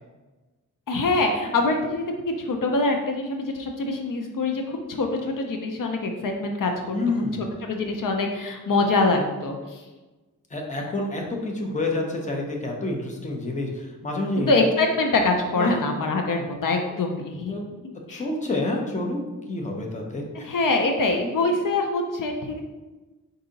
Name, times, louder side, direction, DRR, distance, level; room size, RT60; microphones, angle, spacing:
voice 1, 0.9-7.0 7.4-9.8 14.4-17.5 18.1-18.2 20.4-22.6, left 3 dB, 70° left, 3 dB, 0.6 m, -24 dB
voice 2, 6.9-7.4 10.5-14.5 15.5-15.7 17.5-17.7 18.1-19.2 19.5-20.5, left 2 dB, 20° left, 1 dB, 0.7 m, -28 dB
4.7 x 2.7 x 3.9 m, 1.2 s
wide cardioid pair, 150°, 33 cm